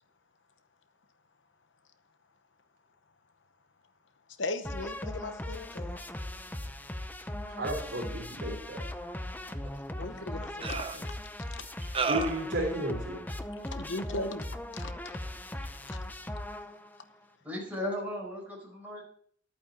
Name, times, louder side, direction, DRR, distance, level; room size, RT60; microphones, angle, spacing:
voice 1, 4.4-6.0 10.0-11.1 13.7-14.5 14.7-15.2 15.9-16.0, left 2 dB, 70° left, 10 dB, 0.9 m, -38 dB
sound 1, 4.6-17.0, left 1 dB, 10° left, 0.7 m, -39 dB
voice 2, 7.5-8.8 12.1-13.2, right 1 dB, 70° right, -1 dB, 3.5 m, -33 dB
sound 2, 9.6-9.7 10.6-11.0 11.9-12.5, right 5 dB, 30° right, 0.7 m, -31 dB
voice 3, 17.4-19.0, left 1 dB, 10° right, -3 dB, 5.0 m, -36 dB
11.5 x 8.8 x 4.3 m, 0.62 s
head